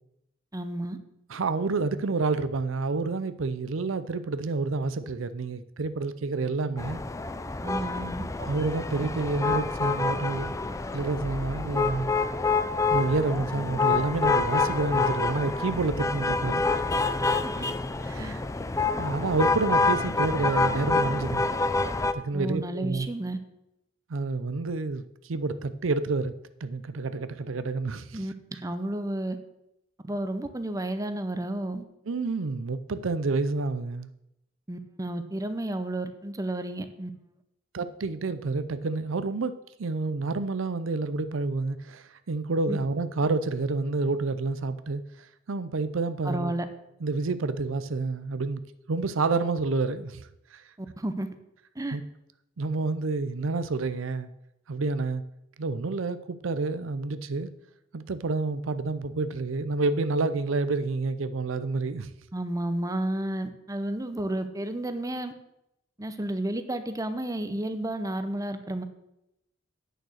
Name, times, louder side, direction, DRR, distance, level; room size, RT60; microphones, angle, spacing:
voice 1, 0.5-1.0 7.6-8.2 17.4-17.7 18.2-18.3 22.3-23.4 28.1-28.3 28.6-29.4 30.0-31.8 34.7-37.1 42.7-42.8 46.2-46.7 50.8-51.3 51.7-52.0 62.3-65.3 66.0-68.8, right 1 dB, 15° right, 0.8 m, -31 dB
voice 2, 1.3-7.0 8.4-10.6 10.9-12.1 12.9-16.8 18.1-18.4 19.0-21.5 22.1-23.1 24.1-26.3 26.6-28.2 32.1-34.1 37.7-39.5 39.8-46.5 47.0-48.6 48.9-50.6 51.9-52.0 52.6-54.3 54.7-55.2 55.6-57.5 57.9-62.1, right 3 dB, 90° right, 0.6 m, -29 dB
sound 1, 6.8-22.1, left 3 dB, 15° left, 0.4 m, -27 dB
8.9 x 6.6 x 6.4 m
head